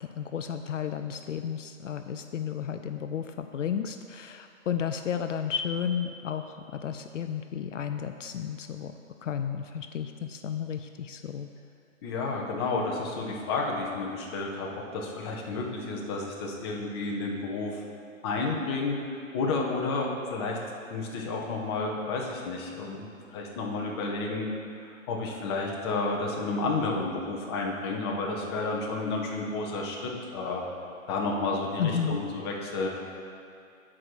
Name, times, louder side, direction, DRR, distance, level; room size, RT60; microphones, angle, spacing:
voice 1, 0.0-8.9 9.2-11.5 31.8-32.2, left 8 dB, 65° left, 7 dB, 0.5 m, -33 dB
voice 2, 12.0-17.8 18.2-20.6 20.9-24.5 24.8-30.6 31.1-32.9, left 3 dB, 20° left, -1 dB, 0.7 m, -31 dB
9.0 x 4.8 x 6.0 m, 2.4 s
hypercardioid pair, 145°, 41 cm